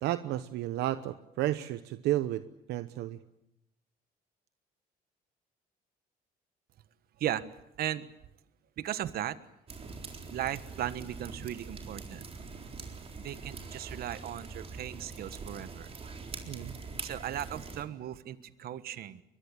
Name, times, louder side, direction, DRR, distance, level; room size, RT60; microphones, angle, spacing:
voice 1, 0.0-2.4 2.7-3.2 16.5-16.7, right 14 dB, 80° right, 12 dB, 0.9 m, -32 dB
voice 2, 8.8-9.4 10.3-12.2 13.2-15.9 17.0-19.2, right 11 dB, 65° right, 14 dB, 1.4 m, -36 dB
sound 1, 9.7-17.8, right 4 dB, 35° right, 4.0 m, -43 dB
23.5 x 22.5 x 8.8 m, 0.84 s
cardioid pair, 110°, 17 cm